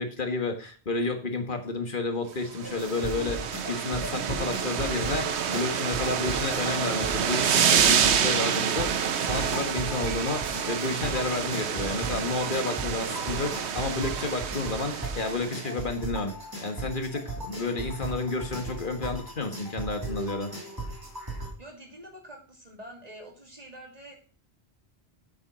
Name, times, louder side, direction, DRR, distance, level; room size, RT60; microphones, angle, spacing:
voice 1, 0.0-16.4 16.6-20.5, left 3 dB, 50° left, 6 dB, 1.8 m, -31 dB
sound 1, 2.5-15.7, right 8 dB, 90° right, 1.1 m, -28 dB
sound 2, 2.6-21.5, right 2 dB, 20° right, 3.1 m, -37 dB
voice 2, 21.6-24.2, right 1 dB, 35° right, 1 dB, 2.8 m, -46 dB
8.2 x 7.1 x 6.1 m, 0.41 s
omnidirectional pair, 1.1 m